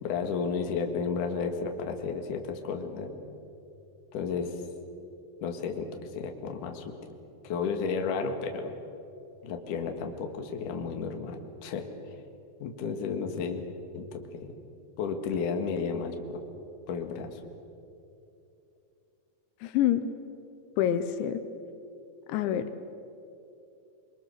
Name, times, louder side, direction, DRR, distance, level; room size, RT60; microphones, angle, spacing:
voice 1, 0.0-3.2 4.1-4.6 5.4-6.9 7.4-8.7 9.4-11.9 12.6-13.6 13.9-14.5 15.0-16.4 16.9-17.4, left 5 dB, 55° left, 4 dB, 2.8 m, -32 dB
voice 2, 19.6-20.0 20.8-21.4 22.3-22.6, left 11 dB, 85° left, 10 dB, 3.2 m, -26 dB
26.5 x 23.5 x 6.7 m, 2.7 s
omnidirectional pair, 5.2 m